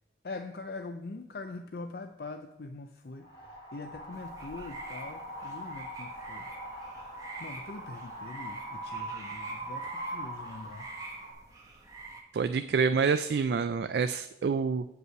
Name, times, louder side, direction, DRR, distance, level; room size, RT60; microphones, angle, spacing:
voice 1, 0.2-6.5 7.4-10.8, left 3 dB, 60° left, 7 dB, 0.5 m, -43 dB
Wind, 3.2-11.3, right 1 dB, 30° left, 2.0 m, -41 dB
sound 1, 4.1-12.2, right 2 dB, 20° right, 1.2 m, -47 dB
voice 2, 12.3-14.8, right 5 dB, 70° right, 10 dB, 0.3 m, -27 dB
8.0 x 5.4 x 7.5 m, 0.89 s
head